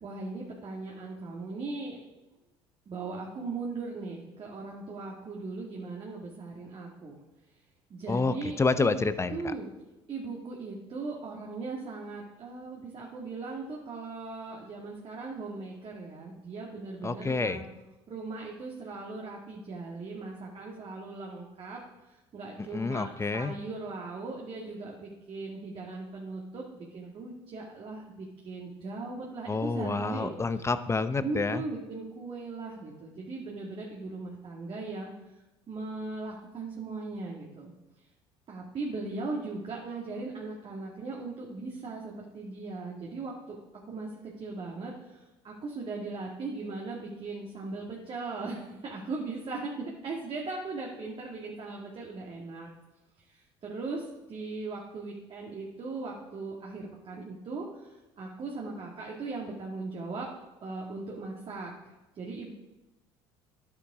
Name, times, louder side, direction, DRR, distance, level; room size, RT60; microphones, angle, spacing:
voice 1, 0.0-2.0 2.9-7.2 7.9-9.0 9.3-9.7 10.1-17.6 18.1-21.8 22.1-30.3 31.2-35.1 35.7-37.7 38.5-43.6 43.9-52.7 53.3-60.3 60.6-61.7 62.2-62.5, right 3 dB, 45° right, -2 dB, 2.1 m, -38 dB
voice 2, 8.1-9.5 17.0-17.6 22.6-23.5 29.5-31.6, left 4 dB, 20° left, 12 dB, 0.8 m, -29 dB
11.0 x 8.9 x 4.9 m, 1.0 s
hypercardioid pair, 70°, 14 cm